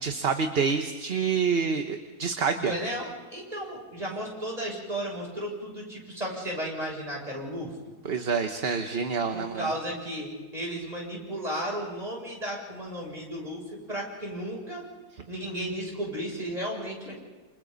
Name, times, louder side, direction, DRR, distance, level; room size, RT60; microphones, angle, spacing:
voice 1, 0.0-2.7 8.0-9.7, right 5 dB, 40° right, 6 dB, 1.3 m, -27 dB
voice 2, 2.6-7.7 9.3-14.8 15.3-17.2, right 1 dB, 25° right, -2 dB, 7.4 m, -34 dB
29.0 x 29.0 x 4.1 m, 1.3 s
omnidirectional pair, 1.6 m